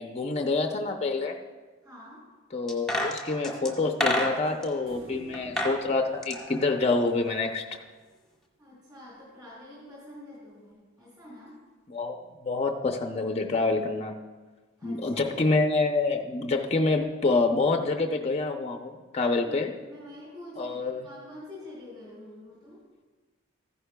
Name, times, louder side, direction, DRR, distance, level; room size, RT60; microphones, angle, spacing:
voice 1, 0.0-1.3 2.5-7.6 11.9-14.1 14.8-19.7 20.6-21.0, left 3 dB, 30° left, 4 dB, 0.5 m, -27 dB
voice 2, 1.8-2.2 8.6-11.6 14.8-15.5 19.4-22.8, left 1 dB, 20° right, -8 dB, 3.4 m, -47 dB
sound 1, 2.7-4.7 5.3-5.8 6.1-7.4 7.7-7.8, left 1 dB, ahead, 1.2 m, -30 dB
sound 2, 4.9-8.1 10.7-10.8, right 1 dB, 75° right, 0.9 m, -49 dB
14.5 x 11.0 x 2.3 m, 1.3 s
head